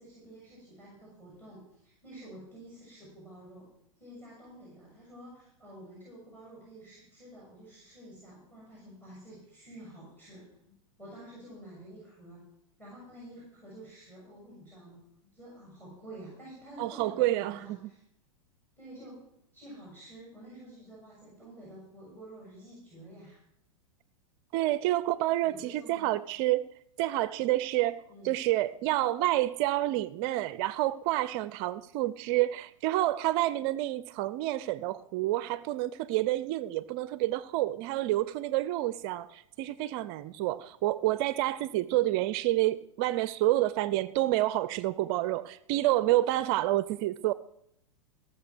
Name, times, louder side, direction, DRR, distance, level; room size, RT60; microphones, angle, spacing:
voice 1, 0.0-3.7 4.0-12.4 12.8-18.0 18.8-19.2 19.5-23.4 25.4-26.1 28.1-28.3, right 1 dB, 10° left, -5 dB, 6.9 m, -50 dB
voice 2, 16.8-17.9 24.5-26.7 27.0-47.3, right 16 dB, 45° right, 17 dB, 0.5 m, -29 dB
17.5 x 6.7 x 6.1 m, 0.75 s
hypercardioid pair, 110°, 17 cm